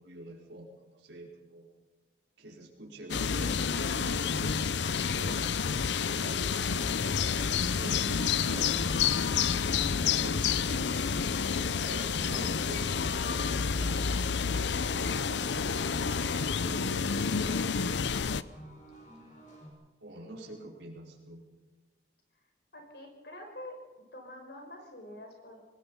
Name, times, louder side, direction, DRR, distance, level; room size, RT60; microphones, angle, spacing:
voice 1, 0.0-1.7 2.4-5.4 5.6-7.0 7.7-14.3 14.7-18.0 20.0-21.4, right 1 dB, 85° right, -2 dB, 4.7 m, -47 dB
sound 1, 3.1-18.4, left 6 dB, 85° left, 0.6 m, -29 dB
sound 2, 7.0-19.7, right 1 dB, 45° left, 5.4 m, -50 dB
voice 2, 20.1-20.7 22.3-22.4 22.7-23.8 24.1-25.6, left 1 dB, 65° left, 3 dB, 5.5 m, -47 dB
25.0 x 19.0 x 5.6 m, 1.2 s
head